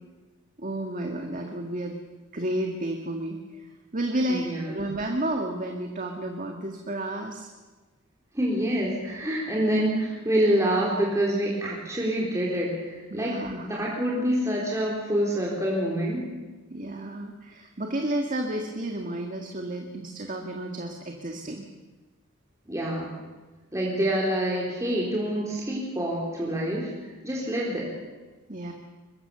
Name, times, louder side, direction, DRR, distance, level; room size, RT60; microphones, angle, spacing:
voice 1, 0.6-2.0 2.3-3.7 3.9-7.5 13.1-13.8 16.7-21.7 28.5-28.7, right 1 dB, 40° right, 3 dB, 1.9 m, -31 dB
voice 2, 4.3-4.9 8.3-13.3 13.6-16.3 22.7-23.1 23.7-27.9, right 1 dB, 15° right, -4 dB, 3.9 m, -26 dB
23.0 x 22.0 x 7.0 m, 1.3 s
head